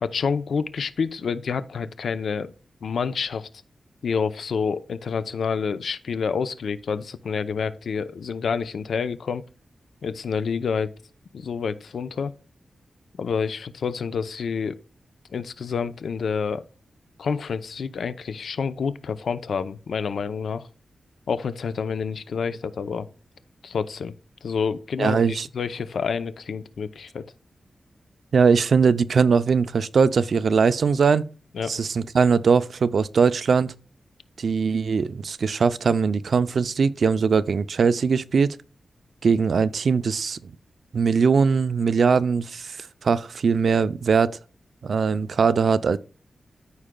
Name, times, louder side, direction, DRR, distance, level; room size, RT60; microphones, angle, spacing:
voice 1, 0.0-2.5 2.8-3.5 4.0-9.4 10.0-10.9 11.3-12.3 13.2-14.8 15.3-16.6 17.2-20.7 21.3-23.1 23.6-24.1 24.4-27.2 31.5-31.8, left 6 dB, 85° left, 0.6 m, -28 dB
voice 2, 25.0-25.5 28.3-31.2 31.7-33.7 34.4-38.6 39.2-40.4 40.9-44.4 44.8-46.0, right 5 dB, 70° right, 0.4 m, -21 dB
14.0 x 4.9 x 2.2 m
wide cardioid pair, 105°, 0 cm